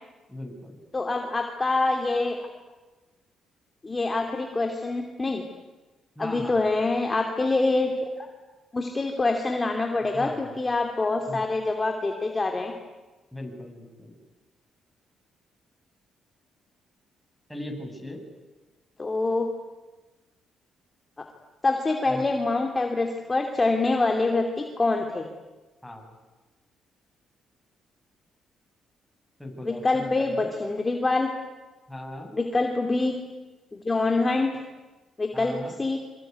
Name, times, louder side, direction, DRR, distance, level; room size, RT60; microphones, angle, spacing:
voice 1, 0.3-0.7 6.2-6.6 10.1-10.6 11.3-11.4 13.3-14.1 17.5-18.2 22.1-22.2 25.8-26.1 29.4-30.5 31.9-32.3 35.3-35.8, left 1 dB, 5° left, 2 dB, 7.6 m, -38 dB
voice 2, 0.9-2.4 3.8-5.4 6.2-8.3 8.7-12.7 19.0-19.5 21.6-25.2 29.6-31.3 32.3-33.1 33.7-34.6 35.2-36.0, left 3 dB, 25° left, 3 dB, 2.9 m, -25 dB
26.0 x 24.0 x 9.6 m, 1.2 s
cardioid pair, 90°, 0 cm